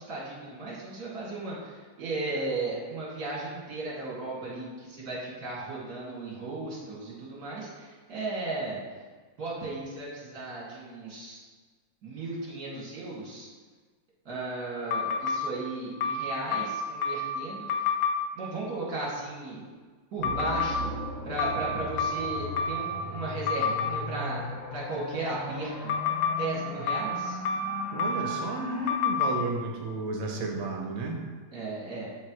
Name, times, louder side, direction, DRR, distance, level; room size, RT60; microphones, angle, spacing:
voice 1, 0.0-8.8 9.4-11.4 12.0-13.5 14.2-17.9 18.4-19.6 20.1-25.9 26.4-27.4 31.5-32.1, right 2 dB, 45° right, -6 dB, 2.7 m, -35 dB
sound 1, 14.9-15.4 16.0-17.4 17.7-18.2 20.2-20.8 21.4-23.0 23.5-23.9 25.9-26.4 26.9-28.4 28.9-29.3, left 4 dB, 75° left, 1.5 m, -28 dB
sound 2, 20.2-29.0, left 1 dB, 45° left, 1.5 m, -38 dB
voice 2, 27.9-31.2, right 2 dB, 70° right, 1 dB, 1.8 m, -32 dB
12.0 x 4.4 x 3.2 m, 1.4 s
omnidirectional pair, 2.4 m